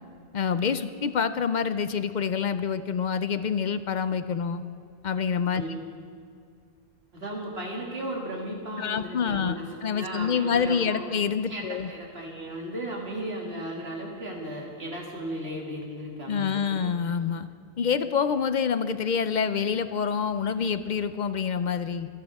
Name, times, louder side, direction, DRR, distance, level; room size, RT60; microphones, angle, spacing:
voice 1, 0.3-4.6 5.0-5.6 8.8-11.9 16.3-17.5 17.8-22.1, left 6 dB, 55° left, 12 dB, 0.6 m, -27 dB
voice 2, 5.6-5.9 7.1-9.6 9.9-11.0 11.5-16.6, right 1 dB, 70° right, -2 dB, 2.6 m, -35 dB
27.5 x 10.5 x 3.5 m, 2.2 s
omnidirectional pair, 1.1 m